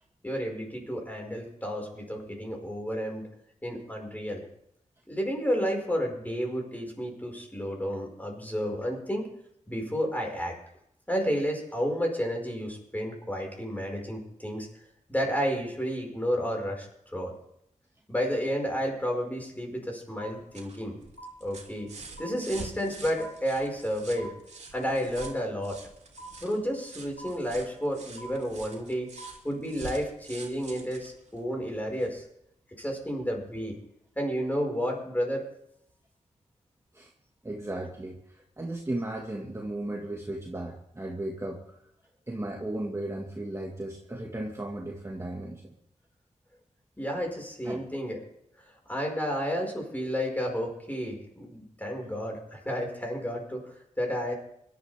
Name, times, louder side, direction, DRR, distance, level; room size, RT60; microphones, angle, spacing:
voice 1, 0.2-3.3 3.6-4.4 5.1-9.3 9.7-10.5 11.1-14.7 15.1-16.9 17.1-17.3 18.1-21.0 21.4-21.9 22.2-24.3 24.7-25.8 26.4-29.1 29.4-32.2 32.8-33.7 34.2-35.5 47.0-48.2 48.9-54.3, equal, 15° left, 0 dB, 5.2 m, -31 dB
sound 1, 20.2-20.9 21.2-21.9 22.2-22.9 23.2-23.9 24.2-24.9 25.2-25.9 26.2-26.9 27.2-27.9 28.2-28.9 29.2-29.9, right 3 dB, 60° left, 1.7 m, -47 dB
sound 2, 20.2-32.2 33.5-33.6, right 3 dB, 65° right, 2.9 m, -47 dB
voice 2, 37.4-41.6 42.3-45.8 47.7-47.9, right 1 dB, 20° right, -1 dB, 1.8 m, -35 dB
24.5 x 12.0 x 3.5 m, 0.75 s
wide cardioid pair, 100°, 13 cm